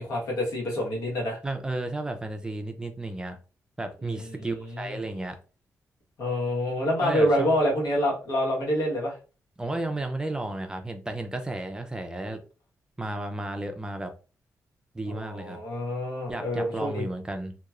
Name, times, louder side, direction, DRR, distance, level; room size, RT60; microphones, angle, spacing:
voice 1, 0.0-1.4 4.0-5.0 6.2-9.2 15.1-17.1, equal, 90° left, -2 dB, 1.2 m, -27 dB
voice 2, 1.4-3.4 3.8-5.4 7.0-7.5 9.6-12.4 13.0-14.1 14.9-15.6 16.3-17.6, right 2 dB, 15° right, 6 dB, 0.3 m, -33 dB
2.9 x 2.3 x 2.3 m, 0.34 s
wide cardioid pair, 180°, 6 cm